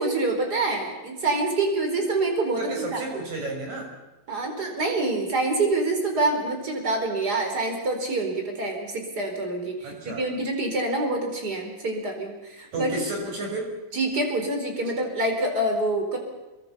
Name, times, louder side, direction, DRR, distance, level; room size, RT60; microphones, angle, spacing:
voice 1, 0.0-3.0 4.3-13.0 13.9-16.2, right 2 dB, 20° right, 3 dB, 4.6 m, -26 dB
voice 2, 2.6-3.9 9.8-10.2 12.7-13.7, right 2 dB, 35° right, 1 dB, 6.9 m, -32 dB
27.5 x 22.5 x 5.7 m, 1.1 s
omnidirectional pair, 5.4 m